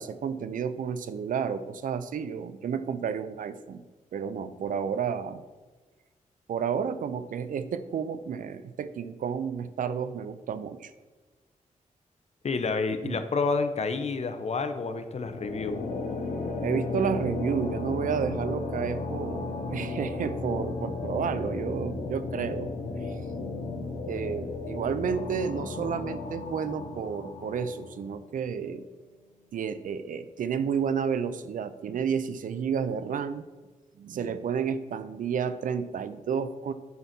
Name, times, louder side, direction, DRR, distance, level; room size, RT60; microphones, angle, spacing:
voice 1, 0.0-3.9 4.1-5.4 6.5-10.9 13.0-13.2 16.6-22.7 23.0-23.2 23.7-28.8 29.5-33.5 34.0-36.7, right 7 dB, 80° right, 12 dB, 0.5 m, -31 dB
voice 2, 12.4-15.8, left 4 dB, 55° left, 9 dB, 0.9 m, -29 dB
sound 1, 15.2-28.3, left 3 dB, 75° left, 1.1 m, -34 dB
9.5 x 4.1 x 5.9 m, 1.3 s
cardioid pair, 70°, 14 cm